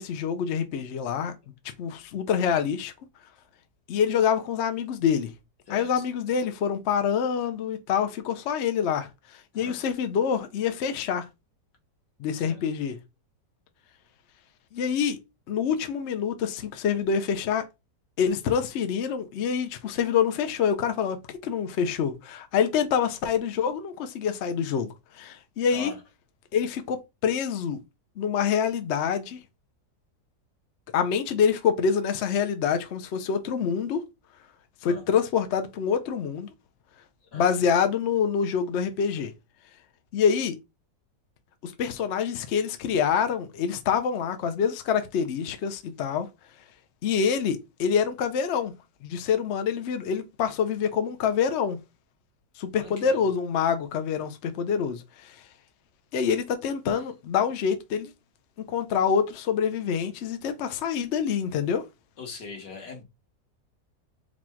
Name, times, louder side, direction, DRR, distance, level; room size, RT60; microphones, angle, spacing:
voice 1, 0.0-1.3 1.8-2.9 3.9-5.3 5.7-9.1 9.5-11.3 12.2-13.0 14.7-15.2 15.5-17.6 18.2-21.2 21.4-24.9 25.2-25.9 26.5-27.8 28.2-29.4 30.9-34.0 34.8-36.5 37.3-39.3 40.1-40.6 41.6-46.3 47.0-48.7 49.0-51.8 52.6-55.0 56.1-58.1 58.7-61.8, left 7 dB, 65° left, 0.7 m, -26 dB
voice 2, 5.7-6.0 9.5-9.9 12.4-12.6 25.7-26.0 34.8-35.0 37.3-37.5 52.7-53.2 56.9-57.1 62.2-63.0, left 5 dB, 80° left, 2.1 m, -41 dB
4.2 x 2.3 x 4.4 m
omnidirectional pair, 1.8 m